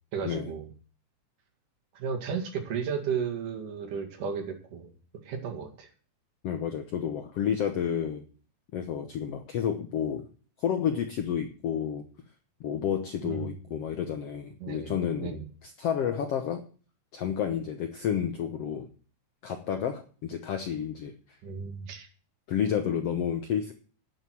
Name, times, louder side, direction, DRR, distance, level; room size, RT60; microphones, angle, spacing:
voice 1, 0.1-0.7 2.0-4.9 5.2-5.9 13.2-13.5 14.6-15.0 15.2-15.4 21.4-22.1, right 6 dB, 65° right, 3 dB, 3.6 m, -34 dB
voice 2, 6.4-8.2 8.7-10.2 10.6-12.1 12.6-16.6 17.1-18.9 19.4-21.1 22.5-23.7, left 8 dB, 75° left, 7 dB, 1.4 m, -30 dB
11.0 x 6.6 x 7.7 m, 0.40 s
omnidirectional pair, 4.1 m